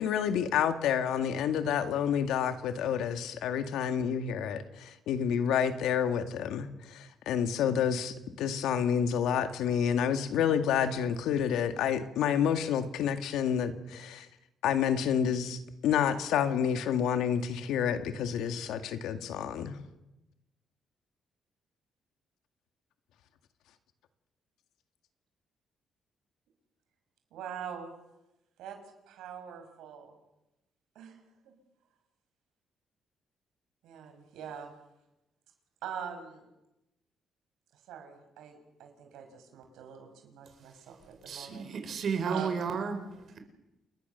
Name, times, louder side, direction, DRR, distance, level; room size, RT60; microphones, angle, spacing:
voice 1, 0.0-14.3 14.6-19.8, left 8 dB, 85° left, 8 dB, 2.0 m, -29 dB
voice 2, 27.3-27.9 28.6-28.8 29.1-30.1 30.9-31.2 31.4-31.5 33.8-34.7 35.8-36.5 37.9-41.7 42.3-42.5 43.2-43.3, right 8 dB, 90° right, 5 dB, 6.0 m, -43 dB
voice 3, 41.3-43.0, right 6 dB, 60° right, 7 dB, 4.8 m, -32 dB
29.0 x 21.5 x 6.9 m, 0.95 s
cardioid pair, 90°, 0 cm